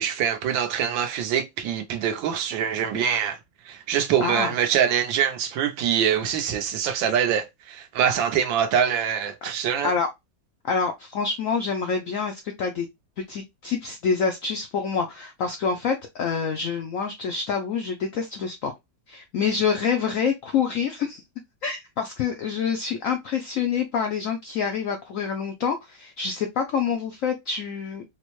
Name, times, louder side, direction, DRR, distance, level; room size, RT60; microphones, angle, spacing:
voice 1, 0.0-3.4 3.6-9.9, right 8 dB, 85° right, 1.5 m, -24 dB
voice 2, 10.6-12.9 13.2-18.7 19.1-21.2 21.6-28.0, left 6 dB, 80° left, 0.7 m, -27 dB
4.4 x 2.1 x 2.9 m
omnidirectional pair, 2.0 m